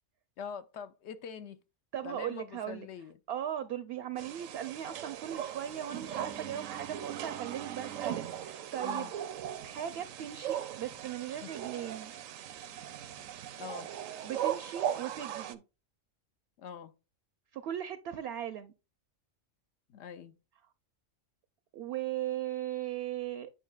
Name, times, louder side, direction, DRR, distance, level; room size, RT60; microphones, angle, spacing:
voice 1, 0.4-1.6 2.0-3.2 8.8-9.1 11.4-11.5 13.6-13.9 16.6-16.9 19.9-20.4, left 7 dB, 65° left, 0.9 m, -44 dB
voice 2, 1.9-2.9 3.3-9.1 9.6-12.1 14.2-15.6 17.5-18.7 21.7-23.5, right 11 dB, 65° right, 0.7 m, -38 dB
sound 1, 4.2-15.5, right 10 dB, 85° right, 1.0 m, -38 dB
8.7 x 5.5 x 2.3 m
omnidirectional pair, 1.3 m